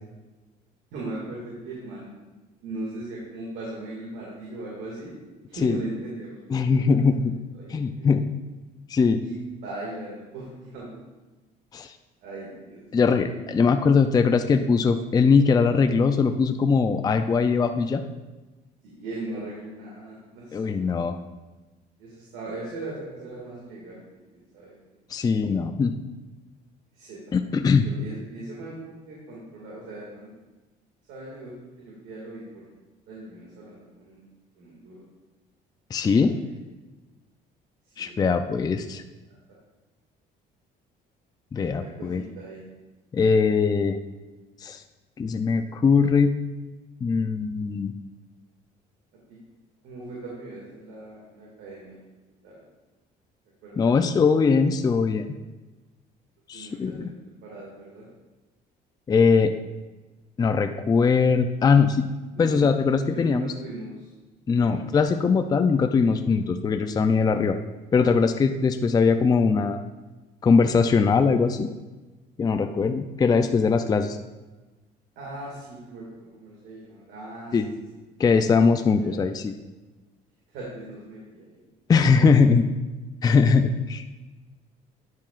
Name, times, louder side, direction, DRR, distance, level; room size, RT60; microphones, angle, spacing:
voice 1, 0.9-2.1 2.6-5.1 5.5-7.3 7.5-8.1 9.2-11.0 12.2-13.2 18.8-20.9 22.0-24.0 24.3-24.7 26.9-27.4 27.7-30.3 31.1-32.7 33.1-34.2 34.5-35.0 36.1-36.5 37.8-38.7 39.3-39.4 41.6-42.6 49.3-49.4 49.8-52.0 52.4-52.6 53.6-54.3 56.5-57.1 57.4-58.1 62.4-62.6 63.0-64.1 64.6-64.8 75.2-77.7 79.0-79.3 80.5-81.6, right 2 dB, 90° right, -5 dB, 2.1 m, -39 dB
voice 2, 6.5-7.3 7.7-8.2 8.9-9.2 11.7-11.9 12.9-18.0 20.5-21.2 25.1-25.9 27.3-27.9 35.9-36.3 38.0-39.0 41.5-42.2 43.1-44.0 44.6-44.8 45.2-46.3 47.0-47.9 53.8-55.3 56.5-57.1 59.1-59.5 60.4-62.1 62.4-63.5 64.5-67.6 67.9-69.8 70.4-71.7 72.4-74.2 77.5-77.7 78.2-79.5 81.9-82.6 83.2-84.1, left 5 dB, 25° left, 7 dB, 0.4 m, -21 dB
11.5 x 7.6 x 2.4 m, 1.2 s
cardioid pair, 110°, 17 cm